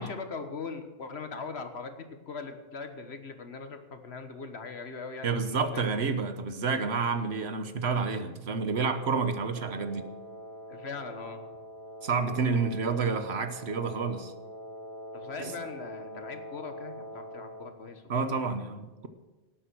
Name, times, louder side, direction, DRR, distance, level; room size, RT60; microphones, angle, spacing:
voice 1, 0.0-5.8 10.7-11.4 15.1-18.7, left 4 dB, 75° left, 7 dB, 1.6 m, -41 dB
voice 2, 5.2-10.1 12.0-14.3 15.4-15.5 18.1-19.1, right 4 dB, 75° right, 9 dB, 1.4 m, -29 dB
Wind instrument woodwind instrument, 9.5-17.8, equal, 20° right, 3.9 m, -44 dB
18.0 x 8.7 x 6.3 m, 1.1 s
omnidirectional pair, 1.1 m